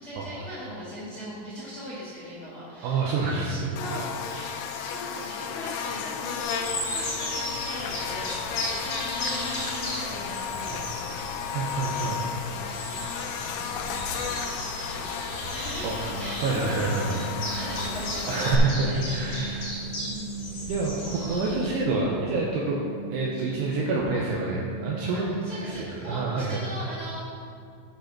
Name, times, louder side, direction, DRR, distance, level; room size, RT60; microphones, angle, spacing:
voice 1, 0.0-4.1 4.7-11.3 11.8-12.0 12.5-13.0 13.4-16.7 17.0-19.6 20.0-20.7 25.3-27.2, equal, 70° left, -10 dB, 1.3 m, -40 dB
voice 2, 2.8-3.7 4.2-4.5 10.7-10.8 11.5-12.2 15.8-16.1 16.4-17.1 18.3-19.7 20.5-22.8 23.1-25.3 25.6-26.6, right 3 dB, 80° right, -2 dB, 2.4 m, -28 dB
Buzz, 3.8-18.6, left 7 dB, 85° left, 3.2 m, -34 dB
sound 1, 6.4-21.8, left 1 dB, 45° left, 2.5 m, -36 dB
sound 2, 16.0-25.7, right 4 dB, 45° right, 1.9 m, -39 dB
9.0 x 5.2 x 5.8 m, 2.4 s
omnidirectional pair, 5.5 m